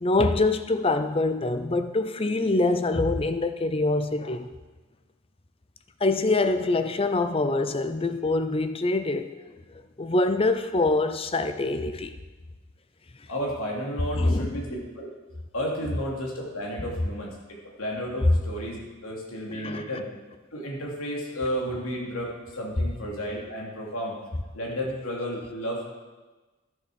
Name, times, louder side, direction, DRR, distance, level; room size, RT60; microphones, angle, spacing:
voice 1, 0.0-4.5 6.0-9.3 10.0-12.1 14.2-14.5 19.5-20.0, left 2 dB, 25° left, 9 dB, 0.6 m, -25 dB
voice 2, 13.3-15.1 15.5-17.3 17.6-20.1 20.5-24.2 24.5-25.8, equal, 80° left, -2 dB, 2.9 m, -32 dB
12.5 x 7.1 x 6.3 m, 1.2 s
head